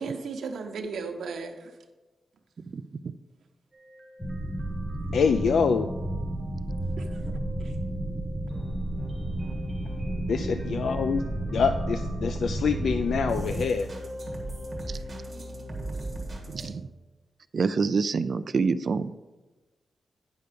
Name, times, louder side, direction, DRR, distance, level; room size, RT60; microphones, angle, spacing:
voice 1, 0.0-1.7 7.0-7.7, right 4 dB, 90° right, 5 dB, 0.9 m, -36 dB
voice 2, 2.7-3.1 10.5-10.9 14.9-15.0 16.5-16.9 17.5-19.1, right 5 dB, 40° right, 13 dB, 0.3 m, -27 dB
sound 1, 3.7-16.7, right 1 dB, 20° right, 1.5 m, -40 dB
sound 2, 4.2-13.7, right 1 dB, 15° left, 1.1 m, -32 dB
voice 3, 5.1-5.9 10.2-11.2 11.5-13.9, left 6 dB, 70° left, 9 dB, 0.3 m, -25 dB
9.1 x 5.6 x 5.1 m, 1.2 s
wide cardioid pair, 180°, 0 cm